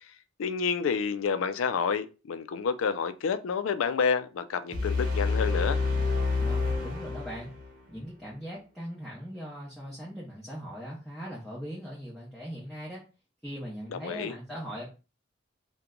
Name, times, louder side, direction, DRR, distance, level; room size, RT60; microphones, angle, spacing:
voice 1, 0.4-5.8 13.9-14.4, left 6 dB, 80° left, 0.4 m, -29 dB
sound 1, 4.7-7.8, left 3 dB, 40° right, 0.9 m, -28 dB
voice 2, 6.4-7.5 7.9-13.0 13.4-14.9, equal, ahead, 0.7 m, -40 dB
2.9 x 2.2 x 3.6 m
head